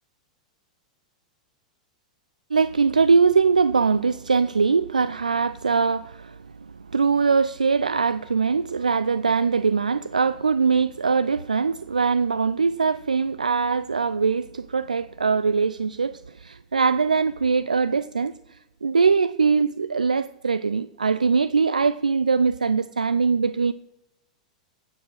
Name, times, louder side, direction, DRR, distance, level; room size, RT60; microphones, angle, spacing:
voice 1, 2.5-23.7, right 5 dB, 85° right, 0.3 m, -22 dB
16.5 x 7.5 x 6.1 m
figure-of-eight pair, 95°, 4 cm